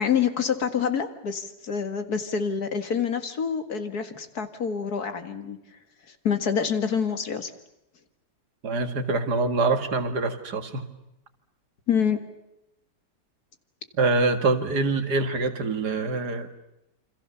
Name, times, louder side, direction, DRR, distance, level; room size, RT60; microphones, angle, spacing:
voice 1, 0.0-5.6 6.2-7.5 11.9-12.2, left 7 dB, 65° left, 8 dB, 2.3 m, -26 dB
voice 2, 8.6-10.8 14.0-16.5, right 3 dB, 70° right, 8 dB, 2.4 m, -25 dB
28.0 x 26.5 x 7.0 m, 0.88 s
omnidirectional pair, 1.8 m